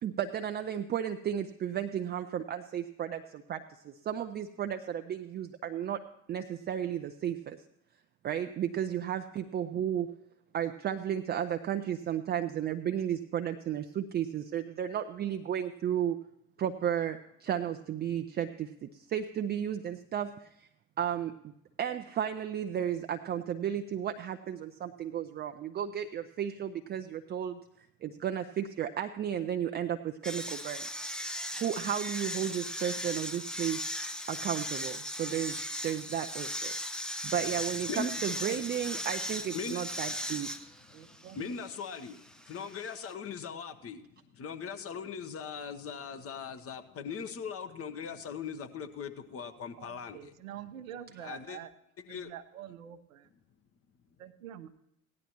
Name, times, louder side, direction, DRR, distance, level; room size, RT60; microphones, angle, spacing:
voice 1, 0.0-6.0 6.3-7.6 8.2-10.1 10.5-16.2 16.6-20.7 21.0-21.5 21.8-31.0 31.5-33.9 34.3-36.7 37.2-40.5, right 9 dB, 25° right, 7 dB, 0.5 m, -34 dB
sound 1, 30.2-43.1, equal, ahead, 0.8 m, -38 dB
voice 2, 37.9-38.6 40.9-41.6 49.8-51.7 52.1-53.3 54.2-54.7, right 10 dB, 70° right, 10 dB, 0.8 m, -46 dB
voice 3, 41.1-44.0 44.3-50.3 51.2-51.6 52.1-52.3, left 6 dB, 35° left, 8 dB, 1.0 m, -40 dB
17.0 x 10.5 x 2.9 m, 0.78 s
figure-of-eight pair, 60°, 42 cm